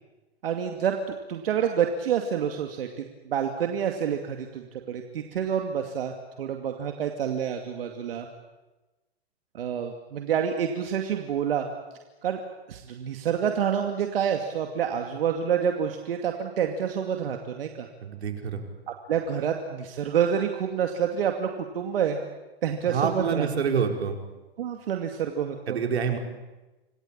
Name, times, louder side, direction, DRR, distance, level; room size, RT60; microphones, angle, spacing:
voice 1, 0.4-1.0 1.3-8.3 9.5-11.7 12.2-12.4 12.7-17.9 19.1-22.2 22.6-23.5 24.6-25.8, right 8 dB, 60° right, 4 dB, 2.5 m, -28 dB
voice 2, 18.0-18.6 22.9-24.2 25.7-26.2, right 6 dB, 85° right, 4 dB, 4.9 m, -27 dB
27.0 x 19.5 x 8.9 m, 1.1 s
hypercardioid pair, 160°, 32 cm